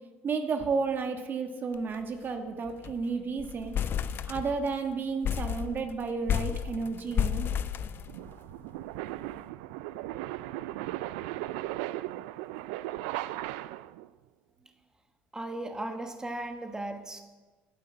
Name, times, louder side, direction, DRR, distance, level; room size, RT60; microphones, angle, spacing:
voice 1, 0.2-3.7 4.2-7.5, right 4 dB, 45° right, 5 dB, 1.4 m, -32 dB
sound 1, 1.7-2.0 2.2-2.3 2.7-3.0 3.4-4.8 5.2-8.5, left 9 dB, 45° left, 0.5 m, -32 dB
sound 2, 6.5-14.1, right 16 dB, 80° right, 0.3 m, -37 dB
voice 2, 15.3-17.2, right 2 dB, 15° right, 5 dB, 1.3 m, -36 dB
9.5 x 8.3 x 7.7 m, 1.3 s
supercardioid pair, 75°, 5 cm